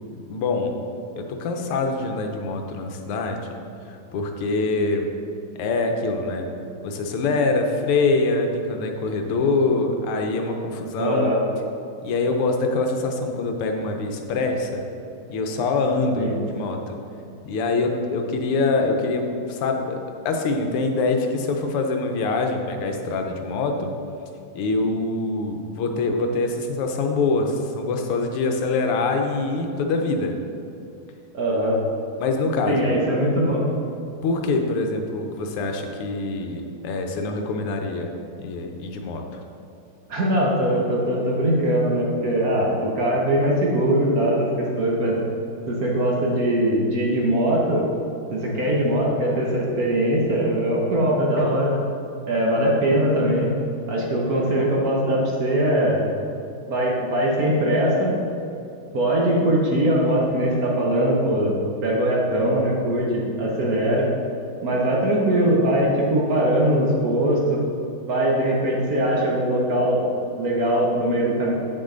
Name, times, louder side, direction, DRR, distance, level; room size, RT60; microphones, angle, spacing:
voice 1, 0.3-0.7 1.2-3.4 3.9-5.1 5.6-6.5 6.8-11.3 12.0-14.8 15.3-17.0 17.5-20.0 20.3-23.9 24.6-30.4 32.2-32.8 34.2-38.1 38.4-39.2, left 3 dB, 90° left, 4 dB, 1.7 m, -24 dB
voice 2, 11.0-11.4 16.2-16.4 31.3-31.8 32.7-33.7 40.1-45.2 45.7-47.8 48.3-51.8 52.3-53.5 53.9-56.0 56.7-58.2 58.9-64.1 64.6-67.6 68.1-70.0 70.4-71.5, right 1 dB, 50° right, -3 dB, 1.3 m, -21 dB
8.3 x 6.3 x 3.8 m, 2.8 s
omnidirectional pair, 2.4 m